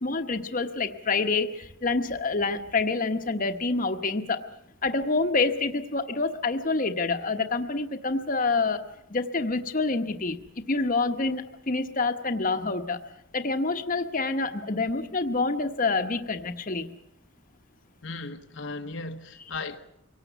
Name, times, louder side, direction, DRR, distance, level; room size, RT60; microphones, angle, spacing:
voice 1, 0.0-4.4 4.8-8.8 9.1-10.4 10.7-13.0 13.3-16.9, left 3 dB, 40° left, 1.1 m, -27 dB
voice 2, 18.0-19.8, left 3 dB, 65° left, 1.1 m, -36 dB
24.0 x 18.0 x 8.1 m
head